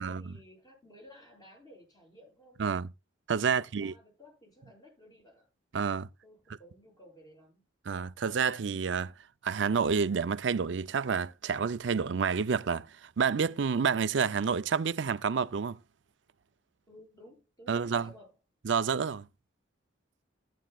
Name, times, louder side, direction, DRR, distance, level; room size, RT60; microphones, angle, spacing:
voice 1, 0.0-2.6 3.5-5.5 6.2-7.6 16.9-18.3, left 1 dB, 20° left, 7.4 m, -55 dB
voice 2, 3.3-3.9 5.7-6.1 7.9-9.1 9.4-15.8 17.7-18.1 18.6-19.3, right 6 dB, 65° right, 0.5 m, -29 dB
13.5 x 10.0 x 2.3 m
head